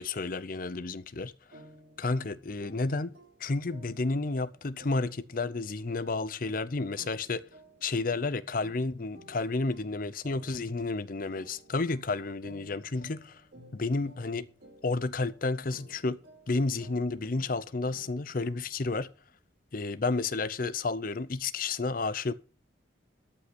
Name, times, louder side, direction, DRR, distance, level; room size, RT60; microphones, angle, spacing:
voice 1, 0.0-1.3 2.0-3.1 3.4-7.4 7.8-13.4 13.7-14.5 14.8-16.2 16.5-19.1 19.7-22.3, left 3 dB, 45° left, 0.6 m, -31 dB
sound 1, 1.5-19.0, right 1 dB, 60° right, 6.2 m, -56 dB
13.5 x 5.7 x 5.9 m
head